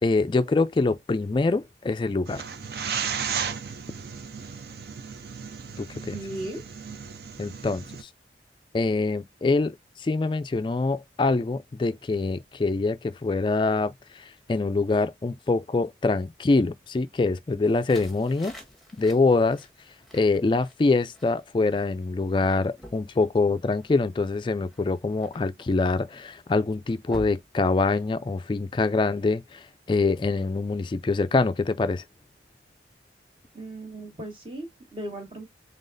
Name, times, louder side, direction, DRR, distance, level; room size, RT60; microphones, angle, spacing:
voice 1, 0.0-2.4 5.8-6.2 7.4-8.1 8.7-18.5 19.0-19.7 20.1-32.0, left 3 dB, 25° left, 0.3 m, -25 dB
sound 1, 2.3-8.0, right 6 dB, 60° right, 0.5 m, -34 dB
voice 2, 6.1-6.6 33.5-35.4, right 1 dB, 30° right, 1.4 m, -37 dB
sound 2, 17.6-28.3, left 1 dB, ahead, 1.1 m, -49 dB
3.9 x 3.5 x 2.6 m
head